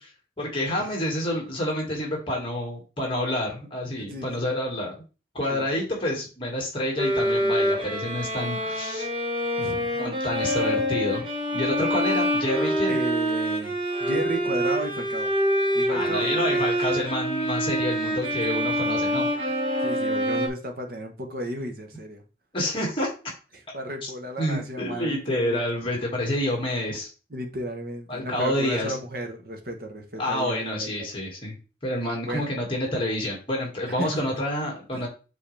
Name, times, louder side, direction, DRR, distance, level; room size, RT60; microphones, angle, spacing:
voice 1, 0.4-5.0 5.3-9.1 9.7-11.2 11.5-13.0 15.9-19.5 22.5-23.1 24.0-24.1 24.4-27.1 28.1-29.0 30.2-31.6 31.8-35.1, left 1 dB, 30° left, -1 dB, 2.1 m, -28 dB
voice 2, 4.0-4.5 5.5-5.7 9.6-9.9 12.9-13.7 14.0-15.3 15.7-16.7 18.3-18.4 19.8-22.2 23.7-25.6 27.3-31.1 32.2-32.5 33.9-34.4 34.9-35.0, right 1 dB, 55° right, 4 dB, 1.3 m, -34 dB
Bowed string instrument, 7.0-20.5, equal, 30° right, 1.5 m, -26 dB
7.5 x 4.1 x 3.4 m, 0.34 s
head